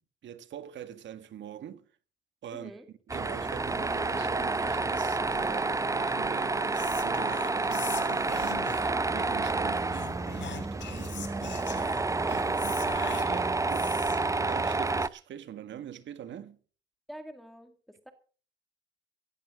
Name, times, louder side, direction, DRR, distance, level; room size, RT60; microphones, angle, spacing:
voice 1, 0.2-1.9 2.4-2.8 3.1-11.9 12.3-13.9 14.3-16.6, right 10 dB, 70° right, 1.8 m, -44 dB
voice 2, 2.5-2.9 17.1-18.1, equal, ahead, 2.0 m, -48 dB
Tools, 3.1-15.1, right 3 dB, 15° right, 0.7 m, -29 dB
Whispering, 6.7-9.0 9.9-14.3, left 9 dB, 65° left, 3.2 m, -42 dB
17.0 x 15.0 x 3.7 m
cardioid pair, 90°, 20 cm